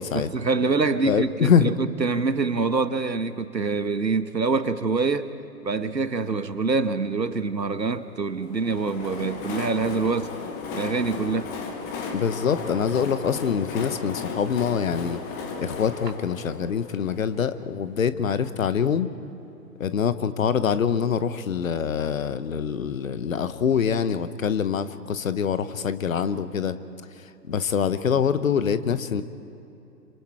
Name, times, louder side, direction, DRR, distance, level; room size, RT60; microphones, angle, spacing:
voice 1, 0.1-5.3 5.6-10.3 10.7-11.5, right 4 dB, 90° right, 12 dB, 1.2 m, -25 dB
voice 2, 1.0-1.8 12.1-15.2 15.6-19.1 19.8-26.8 27.2-29.2, left 7 dB, 55° left, 13 dB, 1.1 m, -25 dB
Train, 8.4-18.0, left 5 dB, 10° left, 0.7 m, -35 dB
27.0 x 25.5 x 4.6 m, 2.9 s
figure-of-eight pair, 130°, 49 cm